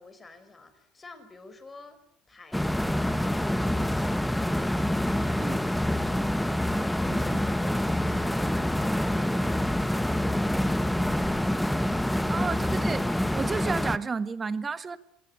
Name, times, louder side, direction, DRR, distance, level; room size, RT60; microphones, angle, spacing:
voice 1, 0.0-2.0 2.3-12.6, left 3 dB, 20° left, 11 dB, 4.9 m, -49 dB
sound 1, 2.5-14.0, left 1 dB, 5° left, 1.0 m, -26 dB
voice 2, 7.1-7.4 12.3-13.0 13.3-15.0, right 5 dB, 25° right, 14 dB, 1.6 m, -32 dB
26.5 x 19.0 x 8.7 m, 0.71 s
supercardioid pair, 105°, 0 cm